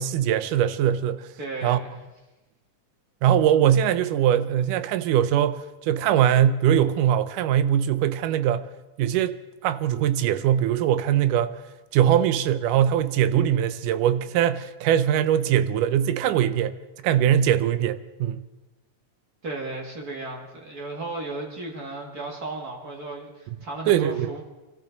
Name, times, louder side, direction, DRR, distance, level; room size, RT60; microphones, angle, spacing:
voice 1, 0.0-1.3 1.6-1.8 3.2-8.7 9.0-9.4 9.6-11.6 11.9-16.8 17.0-18.4 23.9-24.3, right 10 dB, 85° right, 2.2 m, -21 dB
voice 2, 1.4-2.0 19.4-24.4, right 2 dB, 35° right, 1.8 m, -35 dB
25.0 x 14.0 x 4.0 m
omnidirectional pair, 3.7 m